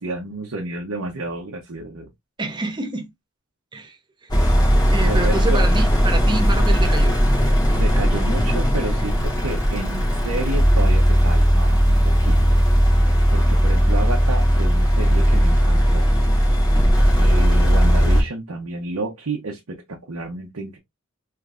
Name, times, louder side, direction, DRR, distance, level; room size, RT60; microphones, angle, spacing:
voice 1, 0.0-2.1 5.0-5.6 7.7-12.4 13.0-16.1 17.2-19.6 19.9-20.8, right 2 dB, 90° right, 0.9 m, -30 dB
voice 2, 2.4-3.1 3.7-4.3 4.9-7.7, right 2 dB, 20° right, 0.6 m, -28 dB
sound 1, 4.3-18.2, equal, 20° left, 1.3 m, -17 dB
3.4 x 3.3 x 2.4 m
head